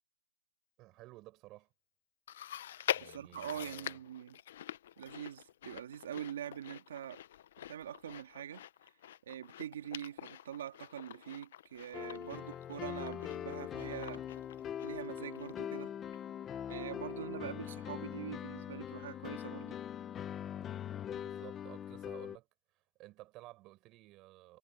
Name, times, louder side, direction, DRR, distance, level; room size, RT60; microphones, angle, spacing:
voice 1, 0.8-1.7 2.9-4.0 21.1-24.6, right 19 dB, 20° right, 7.6 m, -55 dB
Chewing mastication, 2.3-15.8 16.1-16.2 17.0-17.1, left 11 dB, 50° left, 0.5 m, -45 dB
voice 2, 3.0-4.4 5.0-7.2 7.7-8.9 9.3-14.2 14.8-15.9 16.7-19.8, right 10 dB, 60° right, 2.3 m, -44 dB
sound 1, 11.9-22.4, left 9 dB, 15° left, 0.9 m, -42 dB
hypercardioid pair, 170°, 0 cm